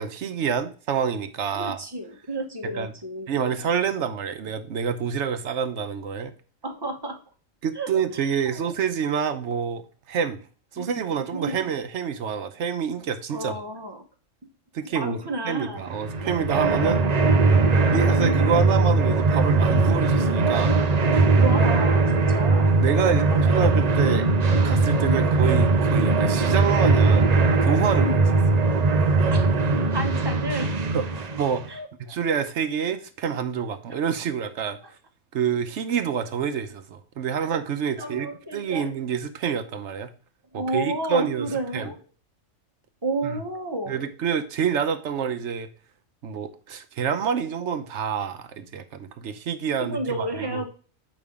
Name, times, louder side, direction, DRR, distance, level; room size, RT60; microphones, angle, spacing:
voice 1, 0.0-1.8 2.6-2.9 3.3-6.3 7.6-10.4 10.7-13.6 14.7-17.0 17.5-17.6 17.9-20.7 22.8-24.3 24.6-27.3 27.6-28.2 30.9-31.7 32.0-34.8 35.3-40.1 40.5-41.5 41.7-41.9 43.2-43.4 43.9-45.7 46.2-50.3, right 7 dB, 65° right, 1.1 m, -27 dB
voice 2, 1.5-3.3 6.6-7.2 7.7-7.9 8.5-8.6 10.8-11.0 11.3-11.5 13.3-14.1 14.9-15.8 17.9-18.6 20.9-22.7 23.2-23.6 25.0-25.3 28.0-28.3 29.3-29.5 29.9-30.7 31.7-32.2 34.8-34.9 37.4-37.5 38.0-38.9 40.5-42.0 43.0-44.0 49.8-50.7, right 1 dB, 20° right, 0.9 m, -31 dB
sound 1, 15.9-31.7, right 3 dB, 40° right, 0.6 m, -20 dB
7.1 x 5.4 x 3.5 m
omnidirectional pair, 1.4 m